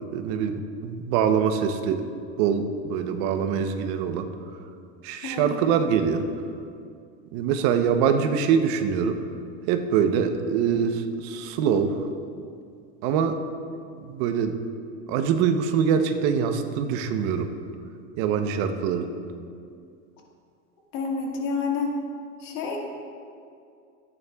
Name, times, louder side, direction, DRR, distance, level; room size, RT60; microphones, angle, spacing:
voice 1, 0.0-2.1 2.4-4.3 5.0-6.2 7.3-9.2 9.7-12.1 13.0-13.4 14.0-14.5 15.1-17.5 18.2-19.1, right 7 dB, 50° right, 7 dB, 0.9 m, -24 dB
voice 2, 5.2-5.6 20.9-21.9 22.4-22.8, left 5 dB, 55° left, -1 dB, 2.0 m, -28 dB
14.0 x 9.7 x 2.4 m, 2.4 s
supercardioid pair, 125°, 36 cm